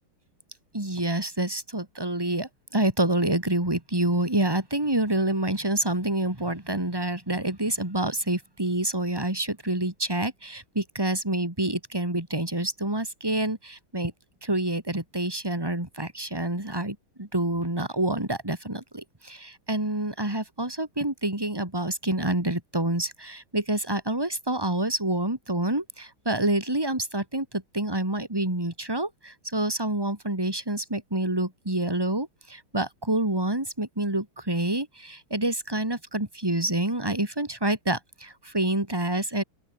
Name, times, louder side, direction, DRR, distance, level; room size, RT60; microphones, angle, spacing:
voice 1, 0.7-14.1 14.4-39.4, right 1 dB, 10° right, 3.8 m, -27 dB
open air
omnidirectional pair, 2.3 m